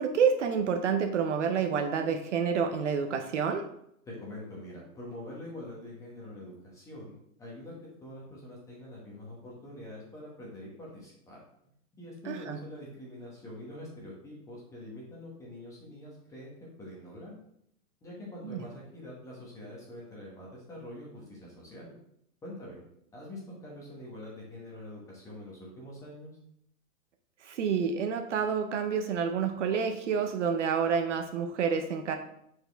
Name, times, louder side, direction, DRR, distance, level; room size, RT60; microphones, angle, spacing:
voice 1, 0.0-3.7 12.3-12.6 18.4-18.6 27.4-32.2, right 6 dB, 55° right, 6 dB, 0.7 m, -28 dB
voice 2, 4.1-7.7 8.0-11.4 11.9-16.5 16.8-17.4 18.0-21.9 22.4-22.8 23.1-26.4, left 1 dB, 5° left, -4 dB, 1.0 m, -45 dB
6.7 x 4.5 x 3.3 m, 0.75 s
hypercardioid pair, 165°, 45 cm